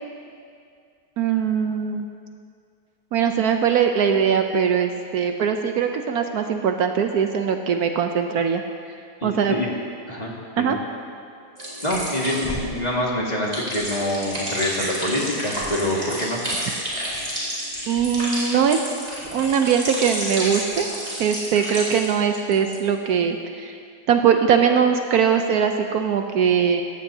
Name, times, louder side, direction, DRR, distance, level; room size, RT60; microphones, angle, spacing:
voice 1, 1.2-2.0 3.1-8.6 9.2-9.6 10.6-10.8 17.9-18.8 19.3-20.9 21.2-23.8 24.1-26.8, right 7 dB, 70° right, 5 dB, 1.1 m, -21 dB
voice 2, 9.2-9.7 10.1-10.7 11.8-16.4, left 1 dB, 25° left, -4 dB, 2.0 m, -26 dB
sound 1, 11.6-22.1 22.3-22.7, equal, 25° right, 3.9 m, -30 dB
17.5 x 14.5 x 2.8 m, 2.3 s
omnidirectional pair, 1.8 m